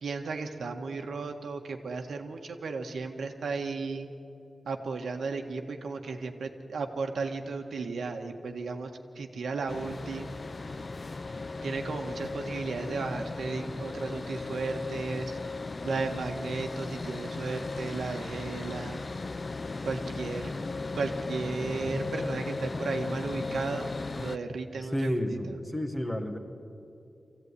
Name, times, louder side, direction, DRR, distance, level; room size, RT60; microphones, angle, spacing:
voice 1, 0.0-4.1 4.7-10.3 11.6-15.4 15.9-19.1 19.8-20.5 20.9-23.9 24.2-25.6, right 4 dB, 85° right, 4 dB, 1.7 m, -34 dB
sound 1, 9.7-24.4, left 3 dB, 30° left, 0.4 m, -36 dB
voice 2, 24.9-26.4, equal, 10° left, 4 dB, 1.6 m, -30 dB
24.5 x 16.0 x 9.8 m, 2.8 s
wide cardioid pair, 180°, 0 cm